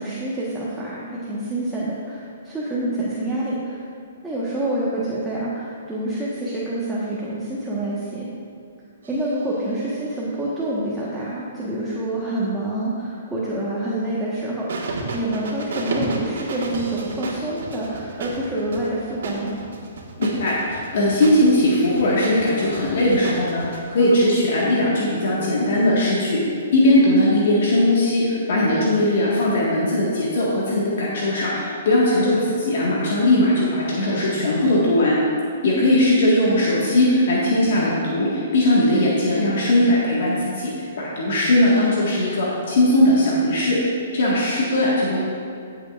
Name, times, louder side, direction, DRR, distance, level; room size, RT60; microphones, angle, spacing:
voice 1, 0.0-3.8 4.2-8.2 9.1-19.6 24.0-24.4 32.2-32.4, right 1 dB, 10° right, -8 dB, 1.4 m, -27 dB
sound 1, 9.0-10.5 14.7-23.8, right 3 dB, 75° right, 1.7 m, -33 dB
voice 2, 20.2-26.4 26.7-32.4 32.6-35.2 35.6-40.7 41.0-43.8 44.1-45.2, left 1 dB, 65° left, -6 dB, 1.8 m, -19 dB
14.5 x 7.5 x 2.6 m, 2.4 s
hypercardioid pair, 135°, 0 cm